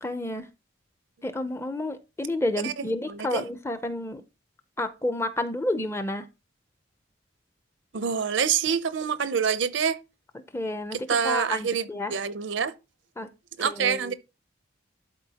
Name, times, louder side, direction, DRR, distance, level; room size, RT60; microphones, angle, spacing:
voice 1, 0.0-0.5 1.2-4.2 4.8-6.3 10.5-11.0 11.2-12.1 13.2-13.3 13.8-14.1, left 1 dB, 15° left, 0.5 m, -30 dB
voice 2, 2.6-3.5 7.9-10.0 10.9-12.7 13.6-14.1, right 6 dB, 70° right, 0.6 m, -27 dB
12.0 x 4.1 x 2.9 m
head